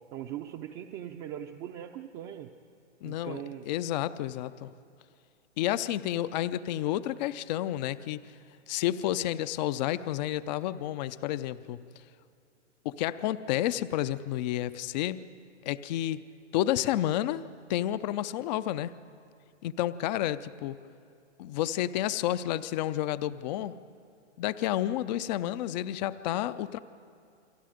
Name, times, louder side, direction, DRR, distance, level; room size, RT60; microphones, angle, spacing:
voice 1, 0.1-2.5 3.0-3.7, right 11 dB, 30° right, 3 dB, 0.7 m, -40 dB
voice 2, 3.0-4.7 5.6-8.2 8.7-11.8 12.8-15.2 15.6-16.2 16.5-18.9 19.6-20.8 21.4-23.8 24.4-26.8, left 13 dB, 35° left, 14 dB, 0.6 m, -30 dB
29.0 x 23.0 x 5.1 m, 2.4 s
hypercardioid pair, 130°, 36 cm